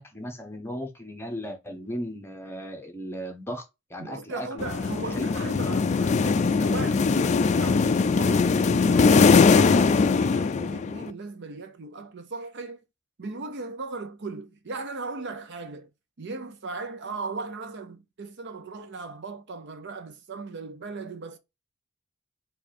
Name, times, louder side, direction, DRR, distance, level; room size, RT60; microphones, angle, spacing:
voice 1, 0.0-3.6 3.9-4.7 5.0-5.3, equal, 10° left, 1.0 m, -36 dB
voice 2, 4.0-12.8 13.2-15.9 16.2-21.4, right 3 dB, 55° right, 0.7 m, -38 dB
sound 1, 4.6-11.1, left 4 dB, 35° left, 0.3 m, -21 dB
4.6 x 2.6 x 4.2 m
head